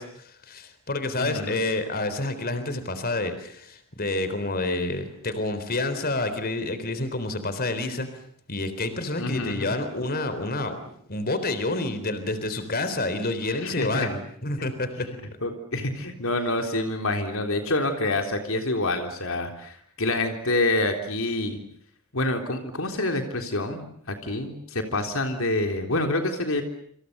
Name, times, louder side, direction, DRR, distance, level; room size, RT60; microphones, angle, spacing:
voice 1, 0.0-8.1 8.5-10.8 11.1-15.1, left 2 dB, 45° left, 11 dB, 3.9 m, -28 dB
voice 2, 1.2-1.6 9.2-9.7 13.5-14.1 15.4-21.6 22.1-26.6, left 2 dB, 65° left, 5 dB, 3.7 m, -27 dB
29.0 x 27.0 x 6.8 m, 0.67 s
head